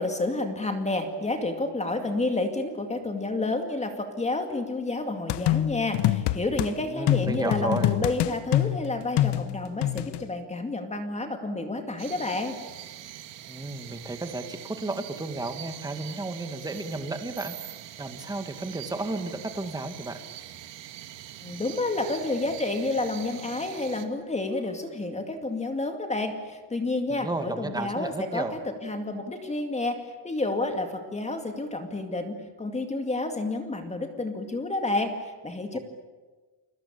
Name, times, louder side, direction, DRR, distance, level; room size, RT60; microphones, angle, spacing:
voice 1, 0.0-12.6 21.4-35.8, left 2 dB, 15° left, 5 dB, 2.2 m, -30 dB
sound 1, 5.3-6.7 7.1-10.2, left 13 dB, 60° left, 1.1 m, -25 dB
voice 2, 6.8-7.9 13.5-17.5 18.0-20.2 27.1-28.6 35.7-35.8, right 2 dB, 10° right, 7 dB, 2.0 m, -33 dB
sound 2, 12.0-24.1, right 12 dB, 65° right, 2.3 m, -43 dB
29.0 x 22.5 x 8.7 m, 1.3 s
cardioid pair, 170°, 46 cm